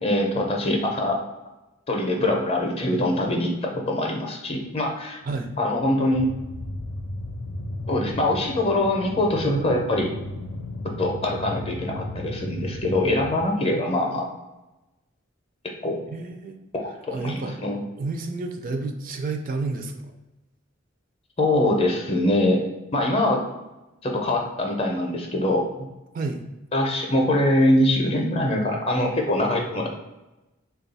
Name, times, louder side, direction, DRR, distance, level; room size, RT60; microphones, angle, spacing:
voice 1, 0.0-1.2 1.9-5.2 5.6-6.3 7.9-10.1 11.0-14.3 15.6-16.0 16.7-17.8 21.4-22.6 22.9-23.4 24.0-25.7 26.7-29.9, left 1 dB, 30° left, 1 dB, 0.6 m, -23 dB
sound 1, 6.1-13.4, left 1 dB, 85° left, 0.4 m, -34 dB
voice 2, 16.1-16.6 17.1-17.6 18.0-20.1 26.1-26.4, right 3 dB, 45° right, 5 dB, 0.3 m, -30 dB
3.5 x 2.3 x 3.9 m, 1.0 s
head